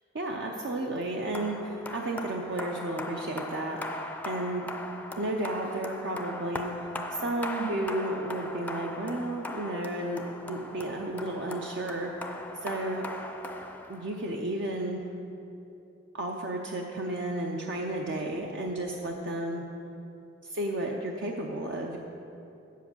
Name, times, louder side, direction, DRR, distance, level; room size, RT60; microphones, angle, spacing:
voice 1, 0.1-4.0 4.3-4.7 5.2-12.3 12.6-13.1 13.9-15.0 16.1-19.6 20.5-22.0, right 1 dB, 65° right, 1 dB, 0.6 m, -33 dB
sound 1, 1.3-14.4, left 1 dB, 10° left, 0.4 m, -39 dB
8.0 x 7.6 x 6.9 m, 2.9 s
head